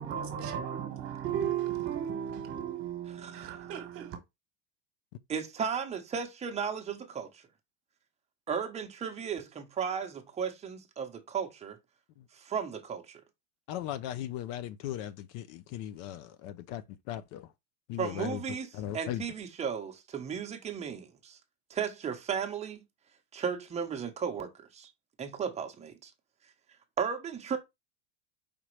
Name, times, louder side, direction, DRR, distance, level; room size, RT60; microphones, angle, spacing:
voice 1, 0.0-4.2, right 9 dB, 40° right, 1.2 m, -35 dB
voice 2, 3.1-3.6 5.3-7.4 8.5-11.8 12.3-13.2 18.0-21.4 21.7-22.8 23.3-24.9 25.2-26.1 27.0-27.6, right 7 dB, 20° right, 0.9 m, -35 dB
voice 3, 13.7-16.8 17.1-17.5 17.9-18.4 18.8-19.2, left 12 dB, 50° left, 0.4 m, -37 dB
5.0 x 2.9 x 3.1 m
supercardioid pair, 125°, 34 cm